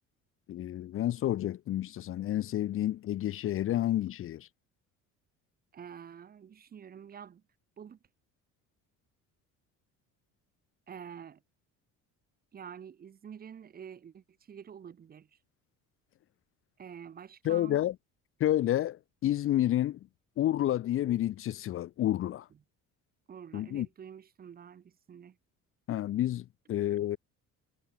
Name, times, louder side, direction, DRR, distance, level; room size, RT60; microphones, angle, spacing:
voice 1, 0.5-4.5 17.4-17.9 18.4-20.0 20.4-22.5 23.5-23.9 25.9-27.2, left 13 dB, 40° left, 1.0 m, -30 dB
voice 2, 5.7-7.4 7.8-8.0 10.9-11.4 12.5-15.3 16.8-17.8 23.3-25.4, right 8 dB, 30° right, 2.4 m, -47 dB
cardioid pair, 175°, 31 cm